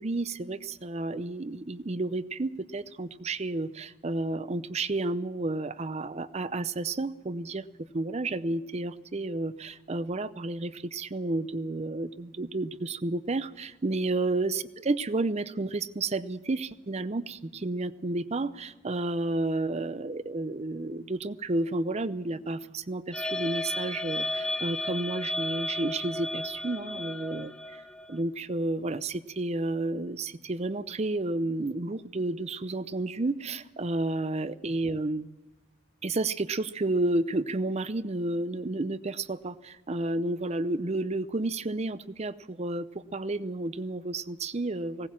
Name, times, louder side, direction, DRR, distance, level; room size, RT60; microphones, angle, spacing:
voice 1, 0.0-7.6 7.9-27.8 28.1-35.3 36.0-45.1, right 2 dB, 30° right, 15 dB, 0.6 m, -31 dB
sound 1, 23.1-28.2, left 2 dB, 5° left, 0.8 m, -34 dB
20.0 x 17.5 x 7.3 m, 1.1 s
head